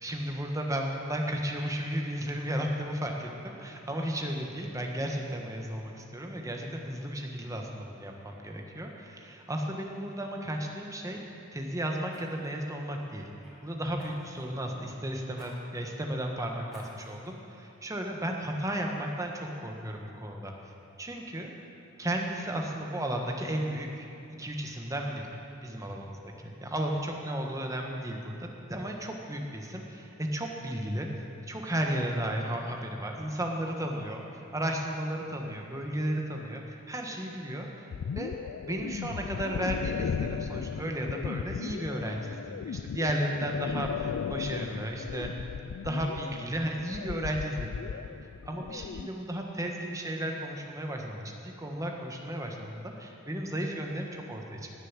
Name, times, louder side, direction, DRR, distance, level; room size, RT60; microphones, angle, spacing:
voice 1, 0.0-11.2 11.5-13.3 13.6-20.5 21.0-21.5 22.0-24.1 24.4-25.4 25.6-26.0 26.6-31.1 31.5-37.7 38.1-38.3 38.7-45.3 45.8-48.1 48.4-54.8, right 1 dB, 15° right, 1 dB, 1.4 m, -34 dB
Fire, 10.0-10.2 12.1-13.5 14.0-14.5 15.3-15.5 15.9-16.0 16.7-17.3 17.8-17.9, equal, ahead, 4.2 m, -54 dB
sound 1, 37.9-49.1, left 7 dB, 75° left, 0.3 m, -36 dB
19.0 x 7.0 x 7.5 m, 2.8 s
head